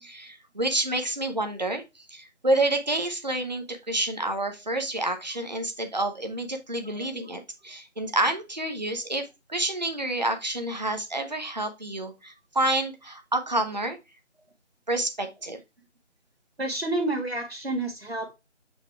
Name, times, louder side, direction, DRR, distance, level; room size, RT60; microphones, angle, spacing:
voice 1, 0.0-14.0 14.9-15.6, right 2 dB, 35° right, 5 dB, 1.0 m, -28 dB
voice 2, 6.8-7.3 16.6-18.3, right 2 dB, 55° right, 1 dB, 1.7 m, -30 dB
8.3 x 2.9 x 4.5 m, 0.24 s
figure-of-eight pair, 170°, 36 cm